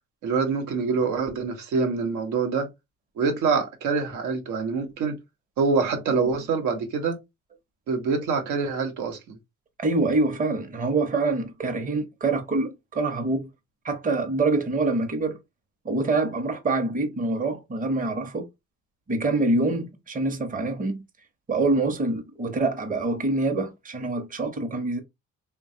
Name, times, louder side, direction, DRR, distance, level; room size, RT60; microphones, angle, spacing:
voice 1, 0.2-2.7 3.2-5.2 5.6-7.2 7.9-9.4, right 5 dB, 80° right, 0.9 m, -25 dB
voice 2, 9.8-13.5 13.8-15.4 15.8-18.5 19.1-21.0 21.5-25.0, right 3 dB, 25° right, 0.8 m, -25 dB
3.2 x 2.2 x 2.6 m
cardioid pair, 90°, 30 cm